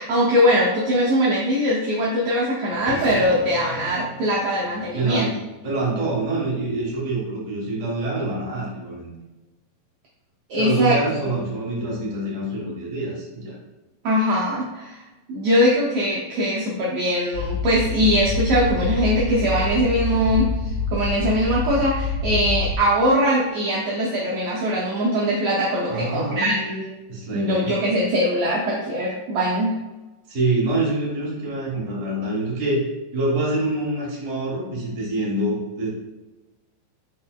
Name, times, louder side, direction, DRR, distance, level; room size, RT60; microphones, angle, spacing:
voice 1, 0.0-5.3 10.5-11.2 14.0-15.0 15.3-20.5 20.9-26.9 27.3-29.8, equal, 90° right, -5 dB, 1.4 m, -21 dB
sound 1, 2.7-7.5, left 2 dB, 85° left, 2.4 m, -39 dB
voice 2, 4.9-5.3 5.6-9.1 10.5-13.5 25.9-26.6 27.1-27.7 30.3-32.8 33.1-35.9, right 2 dB, 55° right, -5 dB, 0.8 m, -25 dB
sound 2, 17.3-22.8, left 4 dB, 65° left, 2.0 m, -26 dB
5.2 x 4.4 x 2.3 m, 1.1 s
omnidirectional pair, 3.9 m